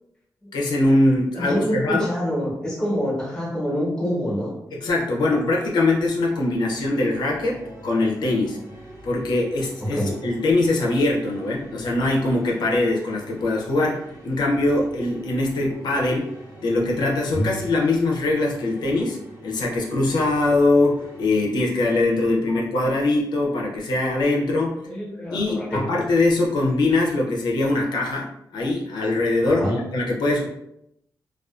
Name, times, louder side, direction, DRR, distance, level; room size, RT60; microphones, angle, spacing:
voice 1, 0.5-2.1 4.7-8.6 9.0-16.3 16.6-19.2 19.4-24.8 25.3-30.5, left 2 dB, 85° left, -1 dB, 0.5 m, -22 dB
voice 2, 1.3-4.6 9.9-10.1 17.3-17.5 22.5-22.6 24.8-26.0 29.4-29.8, equal, 10° left, -4 dB, 0.9 m, -26 dB
sound 1, 6.6-21.3, right 1 dB, 30° right, 0.7 m, -44 dB
2.4 x 2.2 x 2.3 m, 0.80 s
wide cardioid pair, 140°, 7 cm